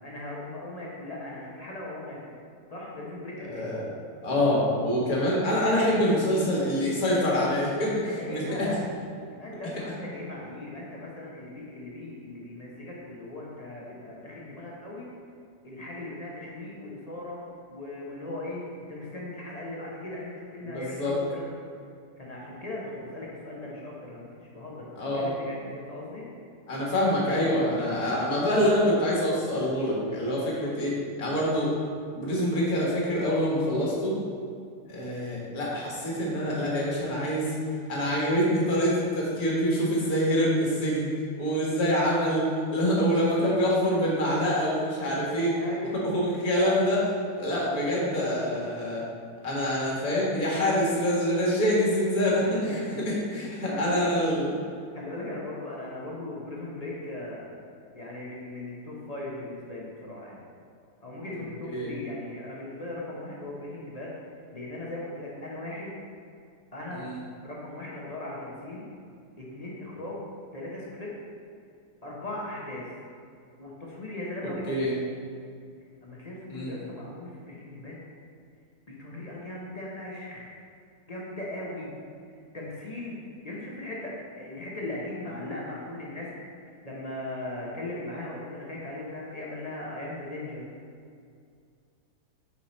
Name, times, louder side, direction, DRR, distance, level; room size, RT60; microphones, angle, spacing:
voice 1, 0.0-2.4 2.7-3.7 8.0-8.8 9.3-15.1 15.6-17.4 17.7-18.6 18.9-21.5 22.2-26.3 45.5-46.1 52.7-53.0 53.6-54.2 54.9-57.6 57.9-60.4 61.0-64.1 64.5-65.9 66.7-67.0 67.4-68.9 69.4-70.2 70.5-71.1 72.0-72.9 73.6-75.0 76.0-78.0 78.9-80.5 81.1-81.9 82.5-83.2 83.4-86.3 86.8-90.6, left 1 dB, 35° left, -4 dB, 0.7 m, -38 dB
voice 2, 3.5-3.9 4.2-8.7 20.6-21.2 25.0-25.3 26.7-31.7 32.1-34.2 34.9-37.6 37.9-41.1 41.4-45.6 46.0-47.1 47.4-49.0 49.4-54.5 61.7-61.9 66.9-67.2 74.7-74.9 76.5-76.8, equal, 60° left, -5 dB, 1.9 m, -25 dB
5.6 x 4.5 x 4.2 m, 2.3 s
omnidirectional pair, 1.8 m